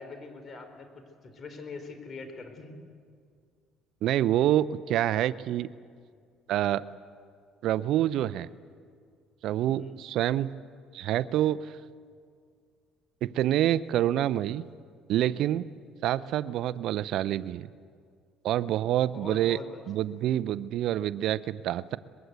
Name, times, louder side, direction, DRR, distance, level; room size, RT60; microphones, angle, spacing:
voice 1, 0.0-2.7 9.8-10.0 19.1-19.8, left 4 dB, 40° left, 7 dB, 4.4 m, -43 dB
voice 2, 4.0-5.7 6.5-6.8 7.6-8.5 9.4-10.5 10.9-11.8 13.2-14.6 15.1-15.7 16.0-17.7 18.4-19.6 19.9-22.0, right 12 dB, 65° right, 16 dB, 0.6 m, -27 dB
23.0 x 22.0 x 8.1 m, 2.1 s
supercardioid pair, 90°, 0 cm